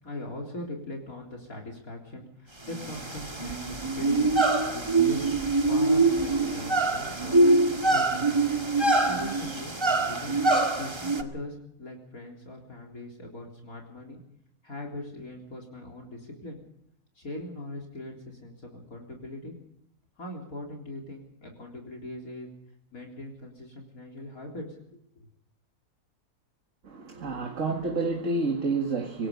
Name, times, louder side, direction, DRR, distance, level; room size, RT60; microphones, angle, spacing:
voice 1, 0.0-4.3 4.7-8.3 9.0-10.4 10.8-14.2 14.6-16.6 17.2-19.5 20.2-22.5 22.9-25.3, left 1 dB, 65° left, 4.1 m, -41 dB
sound 1, 2.7-11.2, right 2 dB, 20° right, 1.6 m, -24 dB
sound 2, 4.1-9.4, right 2 dB, 90° right, 8.2 m, -48 dB
voice 2, 26.8-29.3, right 3 dB, 55° right, 2.2 m, -29 dB
25.5 x 19.0 x 5.3 m
omnidirectional pair, 1.6 m